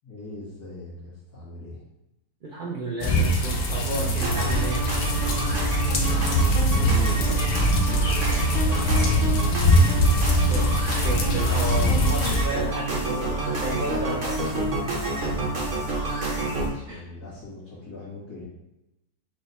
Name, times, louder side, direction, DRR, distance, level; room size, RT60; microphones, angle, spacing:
voice 1, 0.0-1.8 5.1-6.4 6.7-7.3 7.8-10.4 14.9-15.9 16.3-18.4, left 1 dB, 85° left, -11 dB, 2.3 m, -41 dB
voice 2, 2.4-4.9 10.4-14.5 16.9-17.0, right 1 dB, 55° right, -3 dB, 0.5 m, -32 dB
sound 1, 3.0-12.5, equal, 65° left, 0.6 m, -22 dB
sound 2, 4.1-16.7, right 2 dB, 40° right, 0.9 m, -29 dB
4.9 x 2.2 x 4.1 m, 0.91 s
omnidirectional pair, 1.6 m